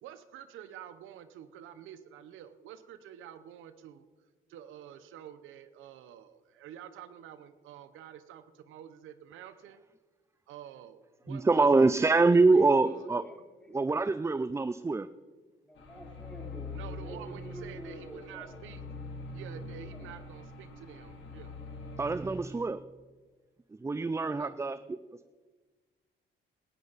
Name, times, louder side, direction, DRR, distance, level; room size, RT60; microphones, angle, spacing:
voice 1, 0.0-4.1 4.5-9.8 10.5-11.7 12.3-13.1 16.7-18.8 19.3-21.6 24.4-24.5, right 10 dB, 90° right, 11 dB, 0.9 m, -48 dB
voice 2, 11.3-13.2 13.7-15.1 22.0-22.8 23.8-25.0, right 3 dB, 15° right, 13 dB, 0.4 m, -25 dB
voice 3, 12.4-12.9 13.2-13.3 13.6-13.7 15.6-18.4 19.9-20.1, equal, 5° left, -2 dB, 4.4 m, -48 dB
sound 1, 15.8-22.4, left 2 dB, 70° left, 2.5 m, -43 dB
16.5 x 14.0 x 4.1 m, 1.4 s
cardioid pair, 90°, 20 cm